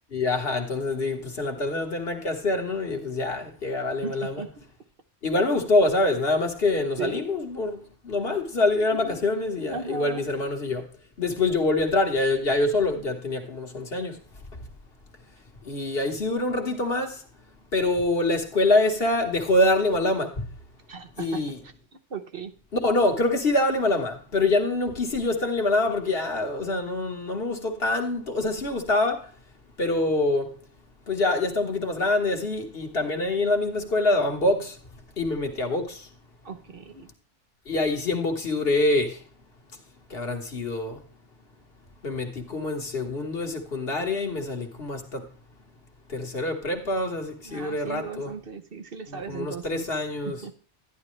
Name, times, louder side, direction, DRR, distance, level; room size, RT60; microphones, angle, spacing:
voice 1, 0.1-4.4 5.2-10.9 11.2-14.2 15.6-17.2 17.7-20.5 21.2-21.6 22.7-29.3 29.8-30.6 31.1-34.8 35.2-36.1 37.6-39.2 40.1-41.0 42.0-45.3 46.1-48.3 49.1-50.4, left 2 dB, 55° left, 1.8 m, -25 dB
voice 2, 4.0-4.6 7.0-7.3 8.9-9.2 9.6-10.3 20.9-21.7 22.1-22.5 36.4-37.1 47.4-49.9 50.2-50.5, right 5 dB, 55° right, 1.1 m, -37 dB
11.0 x 11.0 x 3.2 m
omnidirectional pair, 1.2 m